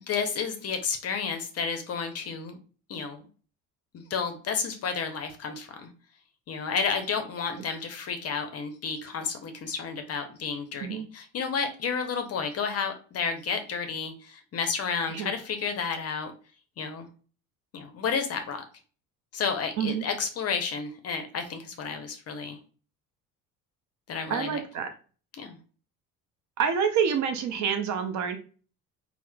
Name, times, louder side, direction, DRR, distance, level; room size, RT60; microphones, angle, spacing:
voice 1, 0.1-2.6 2.9-3.2 3.9-5.9 6.5-16.3 16.8-17.1 17.7-18.6 19.3-22.6 24.1-24.6 25.4-25.6, left 6 dB, 35° left, 6 dB, 0.6 m, -31 dB
voice 2, 24.3-24.9 26.6-28.4, right 7 dB, 40° right, 7 dB, 0.6 m, -27 dB
4.2 x 2.1 x 2.2 m, 0.37 s
figure-of-eight pair, 55°, 45 cm